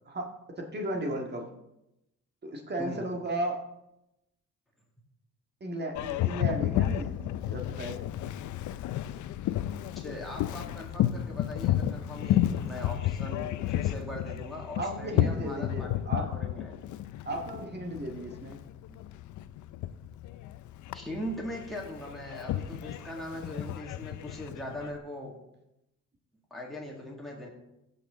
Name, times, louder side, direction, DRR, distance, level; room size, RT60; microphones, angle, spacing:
voice 1, 0.6-1.5 2.4-3.6 5.6-8.0 14.8-16.3 17.3-18.6, right 1 dB, 35° right, 2 dB, 1.9 m, -35 dB
Boat Water vehicle, 5.9-25.0, left 12 dB, 75° left, 0.5 m, -32 dB
voice 2, 10.0-16.8 18.9-19.0 20.9-25.4 26.5-27.5, equal, ahead, -4 dB, 2.1 m, -40 dB
16.0 x 6.0 x 3.7 m, 0.87 s
cardioid pair, 90°, 30 cm